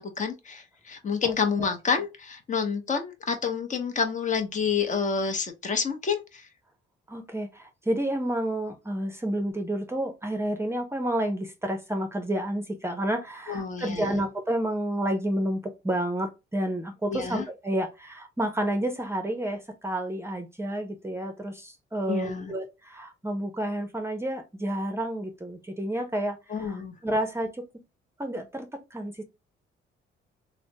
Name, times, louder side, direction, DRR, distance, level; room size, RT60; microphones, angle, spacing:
voice 1, 0.0-6.5 13.5-14.2 17.1-17.4 22.1-22.5 26.5-26.9, left 5 dB, 40° left, 0.8 m, -29 dB
voice 2, 7.1-26.4 26.7-27.5 28.2-29.2, right 1 dB, 10° right, 0.6 m, -30 dB
3.2 x 2.1 x 2.7 m
cardioid pair, 90°, 20 cm